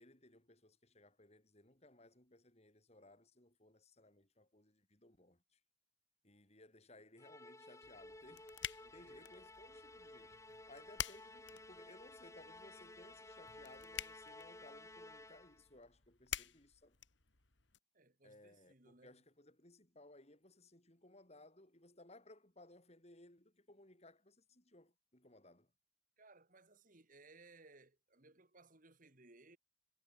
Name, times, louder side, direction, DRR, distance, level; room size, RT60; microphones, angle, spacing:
voice 1, 0.0-5.6 6.2-10.4 10.7-17.0 18.2-25.7, left 2 dB, 35° left, 4.1 m, -62 dB
Musical instrument, 7.2-15.7, left 2 dB, 15° left, 3.3 m, -56 dB
sound 1, 7.8-17.8, left 9 dB, 65° left, 2.3 m, -50 dB
voice 2, 8.8-9.3 17.9-19.2 26.2-29.6, right 3 dB, 40° right, 2.3 m, -63 dB
head